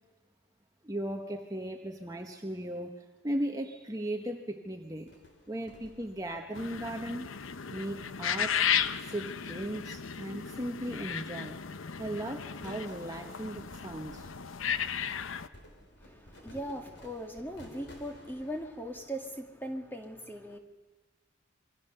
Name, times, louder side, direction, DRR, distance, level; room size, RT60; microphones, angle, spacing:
voice 1, 0.8-5.1 5.5-7.3 7.7-8.6 9.0-11.6 12.0-14.3, right 1 dB, 15° right, 3 dB, 1.2 m, -37 dB
sound 1, 5.1-7.4 7.9-10.4 10.9-11.8 12.1-19.0, left 1 dB, 55° left, 3.7 m, -55 dB
sound 2, 6.5-15.5, left 8 dB, 80° left, 0.8 m, -35 dB
voice 2, 16.0-20.6, equal, 10° left, 3 dB, 2.0 m, -39 dB
27.5 x 23.5 x 6.8 m, 1.3 s
head